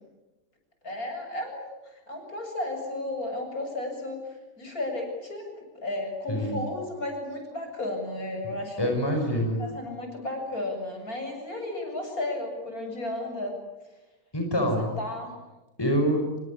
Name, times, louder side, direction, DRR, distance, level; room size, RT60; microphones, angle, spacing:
voice 1, 0.8-4.2 4.6-8.9 9.6-13.5 14.5-15.3, left 1 dB, 55° left, 3 dB, 8.0 m, -34 dB
voice 2, 6.3-6.6 8.8-9.7 14.3-15.0 15.8-16.2, equal, 15° left, 3 dB, 5.3 m, -25 dB
27.5 x 24.0 x 8.6 m, 1.1 s
omnidirectional pair, 1.8 m